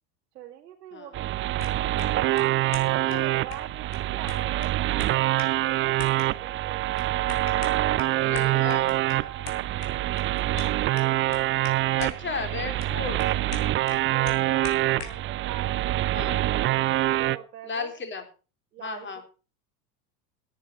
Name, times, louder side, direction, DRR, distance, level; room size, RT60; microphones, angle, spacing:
voice 1, 0.3-1.7 2.3-6.8 7.5-8.9 9.2-9.6 12.7-12.8 13.9-17.9 18.7-19.2, right 11 dB, 70° right, 2 dB, 2.4 m, -43 dB
sound 1, 1.1-17.4, right 15 dB, 25° right, 0.6 m, -25 dB
sound 2, 1.4-15.3, left 6 dB, 65° left, 4.8 m, -44 dB
voice 2, 8.2-8.9 12.0-13.4 16.1-16.4 17.7-18.2 18.8-19.2, left 5 dB, 20° left, 6 dB, 4.0 m, -34 dB
17.0 x 10.0 x 4.7 m, 0.35 s
figure-of-eight pair, 85°, 49 cm